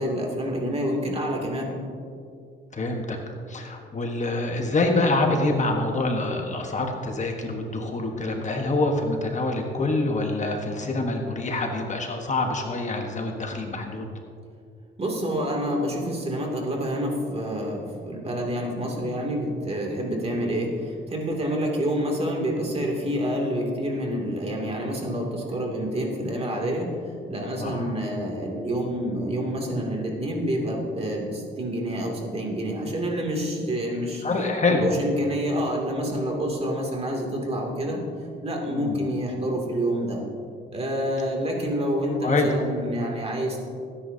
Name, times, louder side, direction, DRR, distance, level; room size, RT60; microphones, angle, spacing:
voice 1, 0.0-1.7 15.0-34.2 34.6-38.0 38.4-40.2 40.7-43.6, equal, 30° right, 0 dB, 2.6 m, -28 dB
voice 2, 2.7-14.1 20.1-20.2 27.6-27.9 34.2-34.9 38.7-39.0 42.2-42.5, left 2 dB, 35° left, 3 dB, 1.3 m, -26 dB
18.5 x 10.0 x 2.8 m, 2.3 s
cardioid pair, 90°, 20 cm